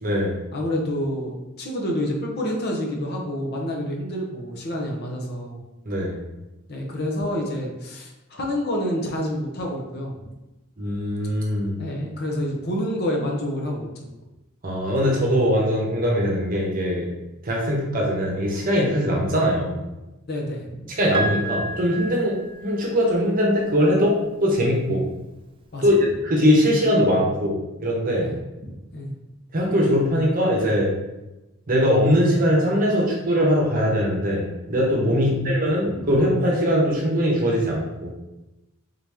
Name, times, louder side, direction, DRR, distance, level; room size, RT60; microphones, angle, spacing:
voice 1, 0.0-0.3 5.9-6.2 10.8-11.8 14.6-17.1 17.4-19.8 20.9-25.0 25.8-28.3 29.5-30.9 31.7-38.1, equal, 40° right, -2 dB, 0.9 m, -21 dB
voice 2, 0.5-5.6 6.7-10.1 11.8-13.9 20.3-20.7 25.7-25.8 28.2-28.4 28.7-29.1 35.1-35.5 35.9-36.1, equal, 50° left, -1 dB, 0.8 m, -28 dB
Piano, 21.1-23.1 24.4-24.5, right 1 dB, 25° right, 0.3 m, -30 dB
3.8 x 2.9 x 3.5 m, 1.0 s
head